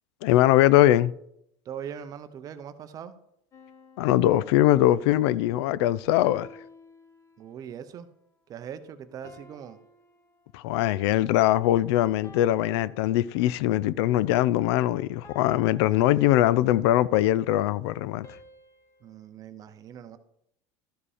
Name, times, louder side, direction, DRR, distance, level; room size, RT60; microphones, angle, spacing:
voice 1, 0.2-1.1 4.0-6.5 10.5-18.3, left 14 dB, 90° left, 0.4 m, -22 dB
voice 2, 1.7-3.2 7.4-8.1 8.5-9.8 19.0-20.2, right 8 dB, 25° right, 0.5 m, -40 dB
sound 1, 3.5-5.2 6.2-7.7 9.2-10.9 12.2-13.8 15.2-17.0 18.2-19.3, left 4 dB, 20° left, 0.7 m, -52 dB
12.5 x 5.0 x 4.9 m
cardioid pair, 175°, 14 cm